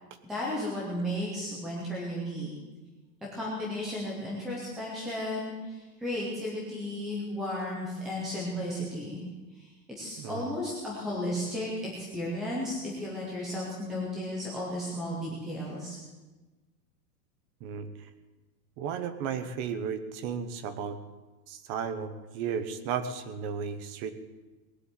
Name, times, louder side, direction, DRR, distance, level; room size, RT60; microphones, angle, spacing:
voice 1, 0.3-2.5 3.3-9.2 9.5-16.0, left 1 dB, ahead, -5 dB, 0.4 m, -34 dB
voice 2, 10.2-10.6 17.6-17.9 18.8-21.0 21.5-24.1, right 7 dB, 25° right, 12 dB, 0.9 m, -34 dB
20.0 x 7.7 x 8.9 m, 1.2 s
supercardioid pair, 165°, 49 cm